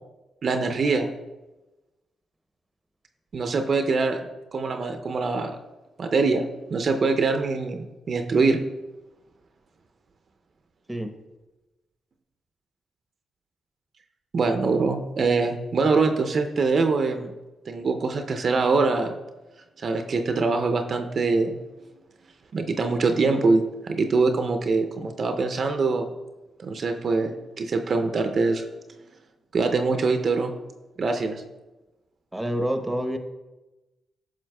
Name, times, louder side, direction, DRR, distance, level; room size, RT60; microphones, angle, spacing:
voice 1, 0.4-1.1 3.3-4.2 4.5-5.6 6.0-8.6 14.3-17.3 17.7-19.2 19.8-21.6 22.5-26.1 26.6-28.6 29.5-30.5 31.0-31.4, right 4 dB, 55° right, 6 dB, 0.5 m, -23 dB
voice 2, 32.3-33.2, equal, 10° right, 8 dB, 0.8 m, -27 dB
8.5 x 6.0 x 2.2 m, 1.1 s
hypercardioid pair, 45°, 0 cm